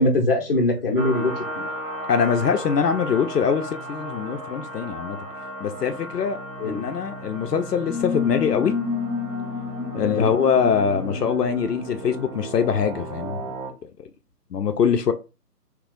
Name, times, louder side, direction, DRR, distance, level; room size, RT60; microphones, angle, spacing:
voice 1, 0.0-1.6 6.6-6.8 10.0-10.3, left 1 dB, 35° left, 0.7 m, -22 dB
sound 1, 0.9-13.7, equal, 55° right, 1.2 m, -35 dB
voice 2, 2.1-5.2 5.6-8.7 9.9-13.4 14.5-15.1, left 6 dB, 70° left, 0.6 m, -23 dB
sound 2, 7.9-13.1, left 5 dB, 15° right, 0.7 m, -30 dB
2.9 x 2.3 x 3.8 m
figure-of-eight pair, 150°, 49 cm